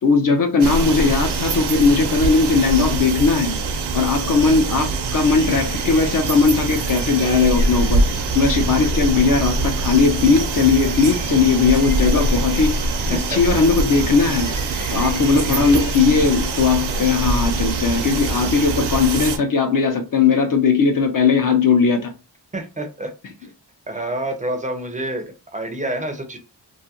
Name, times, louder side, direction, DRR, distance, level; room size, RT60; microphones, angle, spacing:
voice 1, 0.0-3.6 3.9-14.5 14.9-22.1, left 4 dB, 55° left, 0.5 m, -18 dB
sound 1, 0.6-19.4, right 3 dB, 75° right, 0.6 m, -23 dB
sound 2, 3.9-12.5, left 3 dB, 85° left, 1.0 m, -41 dB
sound 3, 5.4-16.9, left 2 dB, 30° left, 0.9 m, -40 dB
voice 2, 13.1-13.6 22.5-23.1 23.9-26.4, right 1 dB, 20° right, 0.4 m, -28 dB
2.5 x 2.3 x 2.7 m
wide cardioid pair, 165°, 41 cm